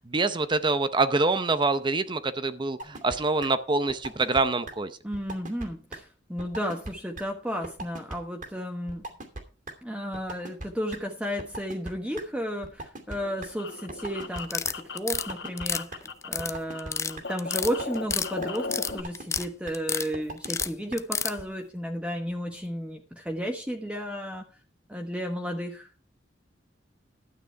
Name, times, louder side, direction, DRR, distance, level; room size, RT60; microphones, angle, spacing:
voice 1, 0.1-4.9, right 3 dB, 25° right, 11 dB, 0.7 m, -25 dB
sound 1, 2.8-3.2 3.4-3.5 3.9-4.4 4.7-4.8 5.1-5.7 5.9-6.0 6.4-6.9 7.2-7.3 7.6-8.2 8.4-8.5 8.9-9.4 9.7-9.8 10.1-11.0 11.4-12.2 12.6-13.5 13.9-14.4 14.7-14.8 15.1-15.6 15.9-16.0 16.4-16.9 17.2-17.3 17.6-18.1 18.4-18.5 18.9-19.4 19.7-19.8 20.1-20.6 20.9-21.0 21.4-21.5, right 2 dB, 45° right, 2.6 m, -38 dB
voice 2, 5.0-9.1 9.8-24.4 24.9-25.9, equal, 5° right, 2 dB, 1.2 m, -33 dB
sound 2, 13.1-16.4 16.7-19.0, left 4 dB, 70° left, 1.7 m, -37 dB
sound 3, 14.4-15.2 15.6-16.5 16.8-17.1 17.4-18.3 18.5-19.5 19.7-20.1 20.4-21.3, left 5 dB, 15° left, 0.5 m, -29 dB
12.5 x 8.8 x 4.6 m, 0.35 s
head